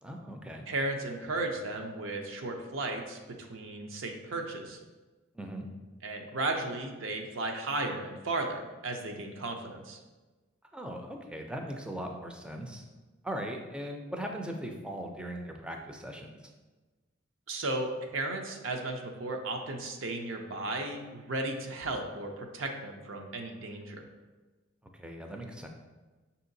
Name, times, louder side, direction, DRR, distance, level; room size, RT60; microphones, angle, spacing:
voice 1, 0.0-0.6 5.3-5.7 10.7-12.9 13.2-16.4 24.9-25.7, equal, 5° right, 2 dB, 0.4 m, -39 dB
voice 2, 0.7-4.8 6.0-10.0 17.5-24.0, right 2 dB, 70° right, 3 dB, 0.5 m, -35 dB
6.2 x 2.8 x 2.6 m, 1.2 s
head